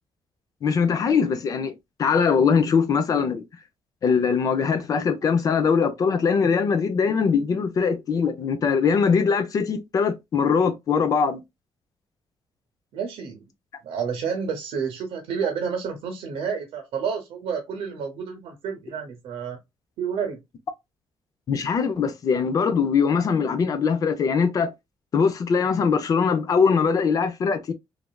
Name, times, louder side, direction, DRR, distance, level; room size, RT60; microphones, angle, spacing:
voice 1, 0.6-1.7 2.0-3.4 4.0-11.4 21.5-24.7 25.1-27.7, left 6 dB, 40° left, 0.4 m, -21 dB
voice 2, 12.9-13.4 13.8-19.6 20.0-20.4, right 6 dB, 90° right, 0.7 m, -30 dB
3.2 x 2.4 x 2.2 m
cardioid pair, 165°, 9 cm